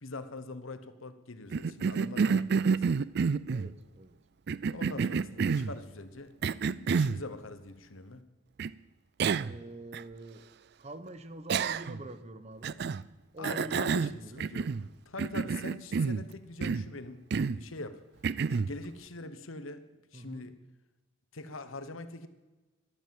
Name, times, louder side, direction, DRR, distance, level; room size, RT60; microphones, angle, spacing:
voice 1, 0.0-2.8 4.7-8.2 13.4-14.7 15.1-18.0 18.5-19.8 20.1-20.5 21.3-22.3, left 2 dB, 90° left, 1.2 m, -43 dB
Cough, 1.5-3.7 4.5-5.7 6.4-7.2 8.6-8.7 9.2-9.6 9.9-10.0 11.5-12.1 12.6-13.0 13.4-14.9 15.2-16.2 16.6-16.9 17.3-17.6 18.2-18.7, right 5 dB, 55° right, 0.4 m, -29 dB
voice 2, 3.5-4.2 9.4-10.5 10.8-12.8 13.3-14.4 20.1-20.5, right 1 dB, 35° right, 0.9 m, -45 dB
12.5 x 12.5 x 7.7 m
head